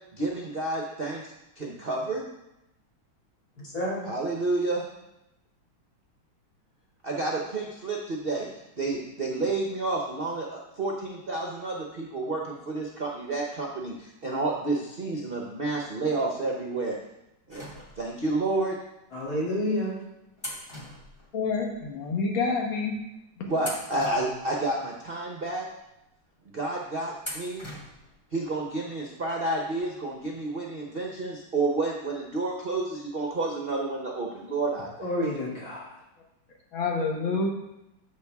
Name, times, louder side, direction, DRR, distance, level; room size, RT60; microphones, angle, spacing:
voice 1, 0.1-2.3 4.1-4.8 7.0-8.5 8.8-17.0 17.5-17.7 18.0-18.8 23.4-25.6 26.5-27.6 28.3-34.9, right 2 dB, 45° right, -1 dB, 0.7 m, -30 dB
voice 2, 3.6-4.1 19.1-20.0 35.0-35.9, left 1 dB, 50° left, -6 dB, 3.2 m, -29 dB
sound 1, 17.5-18.3 19.2-19.3 20.4-21.8 22.1-22.2 22.9-23.2 23.6-24.9 25.4-25.5 27.2-28.2 28.5-28.6 29.7-29.8 30.1-30.2, left 1 dB, 15° left, 1.2 m, -41 dB
voice 3, 21.3-23.0 36.7-37.5, left 4 dB, 75° left, 1 dB, 2.0 m, -27 dB
13.0 x 5.4 x 3.5 m, 0.89 s
omnidirectional pair, 2.2 m